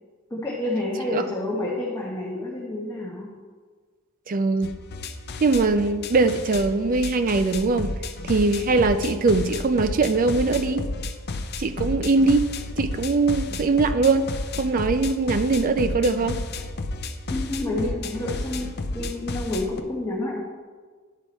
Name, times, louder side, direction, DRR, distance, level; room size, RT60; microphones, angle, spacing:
voice 1, 0.3-3.3 17.3-20.4, left 1 dB, 15° left, -5 dB, 1.1 m, -29 dB
voice 2, 4.3-4.7 5.4-7.9 8.2-10.8 11.6-12.4 12.8-14.3 14.6-16.4, right 3 dB, 40° right, 10 dB, 0.4 m, -21 dB
sound 1, 4.6-19.8, left 2 dB, 50° left, 0.5 m, -32 dB
10.5 x 4.7 x 4.2 m, 1.5 s
head